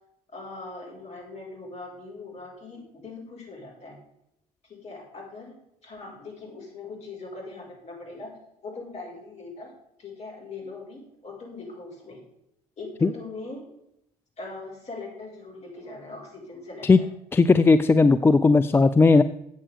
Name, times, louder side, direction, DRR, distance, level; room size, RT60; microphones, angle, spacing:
voice 1, 0.3-4.0 4.6-8.3 8.6-9.7 10.0-12.2 12.8-13.6 14.4-17.0, left 3 dB, 35° left, -1 dB, 4.8 m, -41 dB
voice 2, 17.3-19.2, left 4 dB, 10° left, 12 dB, 0.4 m, -17 dB
14.0 x 8.5 x 3.5 m, 0.80 s
figure-of-eight pair, 60°, 19 cm